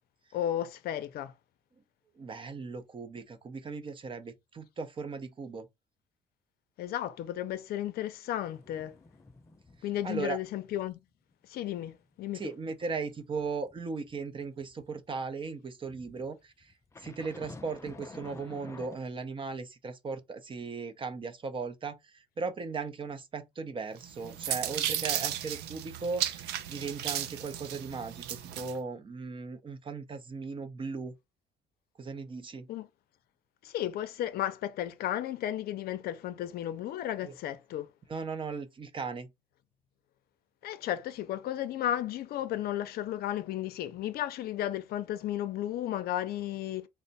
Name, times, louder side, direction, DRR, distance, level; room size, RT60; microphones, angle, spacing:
voice 1, 0.3-1.3 6.8-9.0 9.8-11.0 11.5-12.4 32.7-32.9 33.6-37.9 40.6-46.9, left 12 dB, 65° left, 0.5 m, -34 dB
voice 2, 2.2-5.7 10.0-10.4 12.3-16.7 17.0-31.1 32.0-32.7 37.2-37.3 38.1-39.3, right 4 dB, 30° right, 0.6 m, -37 dB
sound 1, 8.4-10.4 10.7-10.9 11.3-14.9 15.9-19.0, left 3 dB, 15° left, 0.4 m, -51 dB
sound 2, 24.0-28.8, right 11 dB, 80° right, 0.5 m, -34 dB
3.3 x 2.0 x 3.9 m
cardioid pair, 110°, 17 cm